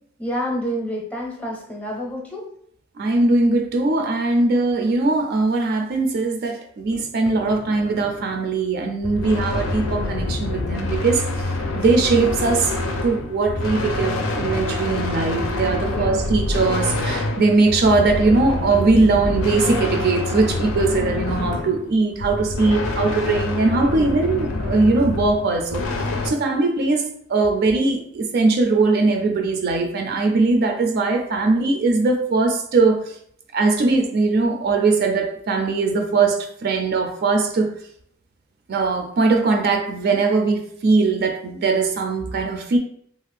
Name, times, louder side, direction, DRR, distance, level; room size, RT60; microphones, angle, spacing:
voice 1, 0.2-2.5 15.8-16.3, equal, 5° left, -1 dB, 0.6 m, -28 dB
voice 2, 3.0-11.2 11.7-12.7 13.0-25.8 26.2-33.0 33.5-37.7 38.7-42.8, right 3 dB, 50° right, 4 dB, 0.3 m, -20 dB
sound 1, 6.8-8.4 9.3-10.5 11.0-11.8 12.1-12.4 12.8-13.6 14.3-14.9 15.6-16.2 16.7-17.3 18.8-19.3 19.8-20.3 21.6-21.7, right 1 dB, 90° right, 0.6 m, -38 dB
sound 2, 9.0-26.3, left 2 dB, 85° left, 0.5 m, -26 dB
2.5 x 2.3 x 3.3 m, 0.66 s
head